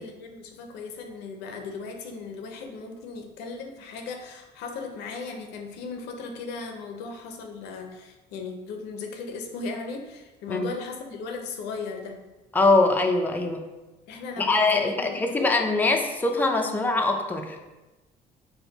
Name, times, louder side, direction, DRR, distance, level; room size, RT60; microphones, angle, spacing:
voice 1, 0.0-12.2 14.1-15.5, left 4 dB, 90° left, 4 dB, 0.5 m, -37 dB
voice 2, 12.5-13.6 14.4-17.6, left 3 dB, 10° left, 3 dB, 0.4 m, -23 dB
4.3 x 2.2 x 3.9 m, 1.1 s
cardioid pair, 110°, 17 cm